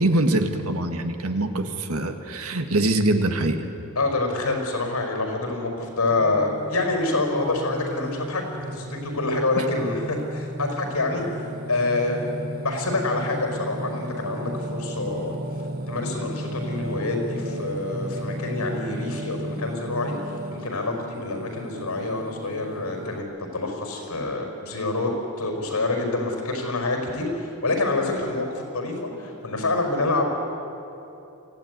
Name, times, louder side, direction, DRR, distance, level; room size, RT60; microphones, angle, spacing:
voice 1, 0.0-3.6 9.6-9.7, right 1 dB, 75° right, 6 dB, 1.8 m, -23 dB
voice 2, 3.9-11.2 11.7-12.2 12.6-15.4 15.9-23.2 23.5-25.1 25.4-30.3, left 2 dB, 85° left, 3 dB, 5.1 m, -27 dB
Singing, 6.1-23.2, right 1 dB, 40° right, 1.0 m, -34 dB
24.5 x 15.5 x 9.5 m, 2.9 s
head